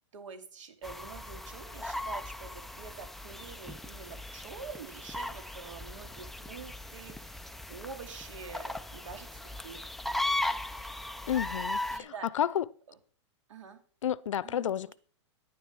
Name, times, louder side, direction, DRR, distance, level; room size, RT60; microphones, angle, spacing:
voice 1, 0.1-9.8 11.9-12.3 12.9-13.0 13.5-13.8 14.4-14.9, right 6 dB, 85° right, 2.5 m, -46 dB
sound 1, 0.8-12.0, left 1 dB, ahead, 0.4 m, -37 dB
voice 2, 11.3-12.6 14.0-14.9, left 10 dB, 90° left, 0.6 m, -31 dB
10.5 x 10.0 x 4.6 m
hypercardioid pair, 145°, 16 cm